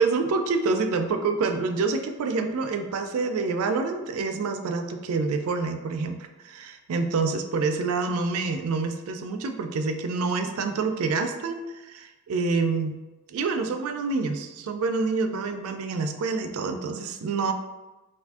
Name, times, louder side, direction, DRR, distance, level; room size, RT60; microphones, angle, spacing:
voice 1, 0.0-13.0 13.3-17.5, right 4 dB, 70° right, 6 dB, 0.4 m, -27 dB
2.6 x 2.5 x 3.5 m, 1.1 s
head